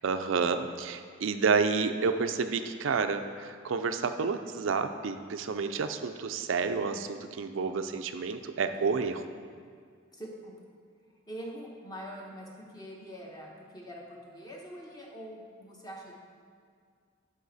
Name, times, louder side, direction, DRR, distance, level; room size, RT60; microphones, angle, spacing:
voice 1, 0.0-9.2, right 5 dB, 70° right, 8 dB, 0.4 m, -30 dB
voice 2, 8.7-9.0 10.1-10.6 11.3-16.2, equal, 20° left, -1 dB, 1.1 m, -44 dB
11.5 x 5.3 x 4.1 m, 2.1 s
head